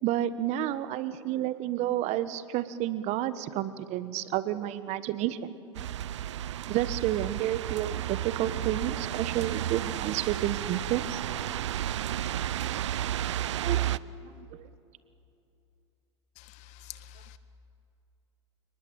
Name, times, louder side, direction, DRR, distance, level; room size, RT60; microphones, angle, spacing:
voice 1, 0.0-5.6 6.7-11.2 12.8-12.9 13.6-13.8 14.4-14.5, right 12 dB, 50° right, 14 dB, 1.3 m, -30 dB
sound 1, 5.7-14.0, right 12 dB, 80° right, 0.6 m, -32 dB
voice 2, 16.4-17.4, left 12 dB, 50° left, 11 dB, 1.7 m, -47 dB
29.5 x 19.5 x 9.1 m, 2.7 s
hypercardioid pair, 95°, 15 cm